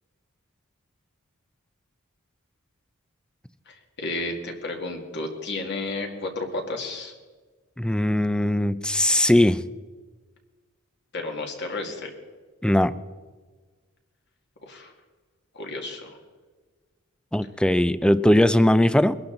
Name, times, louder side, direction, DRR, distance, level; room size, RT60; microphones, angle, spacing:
voice 1, 3.7-7.1 11.1-12.1 14.6-14.9 15.5-16.2, left 2 dB, 55° left, 3 dB, 2.2 m, -32 dB
voice 2, 7.8-9.6 12.6-12.9 17.3-19.1, left 1 dB, 5° left, 14 dB, 0.4 m, -19 dB
22.5 x 11.5 x 3.9 m, 1.4 s
head